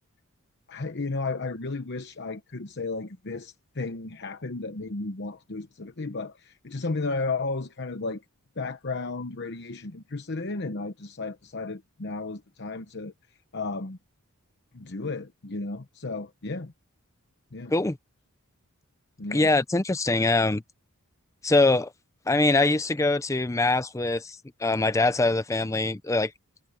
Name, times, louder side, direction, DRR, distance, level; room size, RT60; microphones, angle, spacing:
voice 1, 0.7-8.2 8.6-13.1 13.5-14.0 14.7-16.7 17.5-17.7 19.2-19.5, left 3 dB, 50° left, 0.9 m, -33 dB
voice 2, 19.3-20.6 21.4-21.9 22.3-26.3, left 2 dB, 15° left, 0.5 m, -23 dB
head